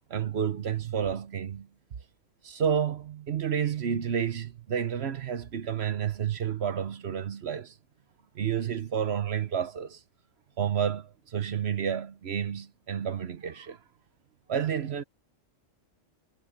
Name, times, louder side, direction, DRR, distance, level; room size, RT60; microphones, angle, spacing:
voice 1, 0.1-1.7 2.4-7.7 8.3-10.0 10.6-13.8 14.5-15.0, right 8 dB, 55° right, 1.1 m, -30 dB
omnidirectional pair, 1.3 m